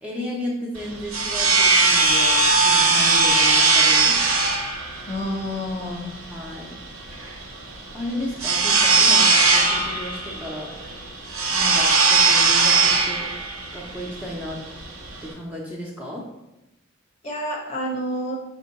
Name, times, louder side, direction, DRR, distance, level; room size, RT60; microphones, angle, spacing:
voice 1, 0.0-4.2 6.1-6.7 7.9-10.7 11.5-13.3 13.7-14.6 15.2-16.3, equal, 5° right, -4 dB, 0.5 m, -33 dB
sound 1, 0.8-15.3, right 4 dB, 80° right, 0.8 m, -19 dB
voice 2, 5.1-6.1 17.2-18.3, equal, 30° left, -1 dB, 0.7 m, -28 dB
5.3 x 2.2 x 3.9 m, 0.92 s
head